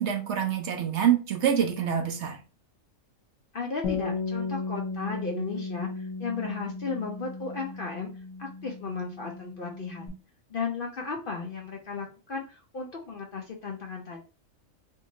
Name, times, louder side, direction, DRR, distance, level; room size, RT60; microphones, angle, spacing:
voice 1, 0.0-2.4, right 9 dB, 65° right, 5 dB, 0.9 m, -26 dB
voice 2, 3.5-8.1 8.4-10.1 10.5-14.2, left 4 dB, 55° left, 1 dB, 0.6 m, -35 dB
Bass guitar, 3.8-10.1, left 4 dB, 80° left, 1.1 m, -35 dB
3.6 x 2.9 x 2.6 m, 0.33 s
omnidirectional pair, 1.4 m